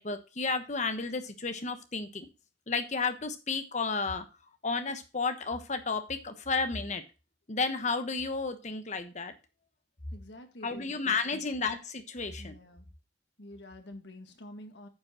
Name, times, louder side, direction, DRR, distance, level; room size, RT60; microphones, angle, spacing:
voice 1, 0.0-2.3 2.7-4.2 4.6-7.0 7.5-9.3 10.6-12.5, left 4 dB, 40° left, 9 dB, 1.2 m, -32 dB
voice 2, 10.1-11.5 12.4-12.9 13.4-14.9, left 1 dB, 70° left, 6 dB, 1.7 m, -48 dB
9.4 x 5.4 x 5.7 m, 0.30 s
head